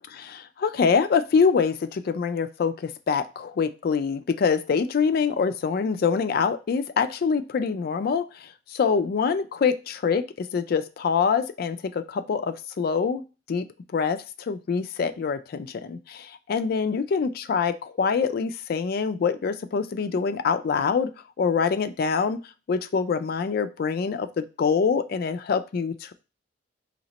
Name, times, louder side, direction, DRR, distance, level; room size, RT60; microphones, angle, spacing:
voice 1, 0.1-13.2 13.5-13.7 13.9-21.1 21.4-22.4 22.7-26.1, left 5 dB, 50° left, 11 dB, 0.3 m, -25 dB
3.0 x 2.8 x 4.0 m, 0.31 s
head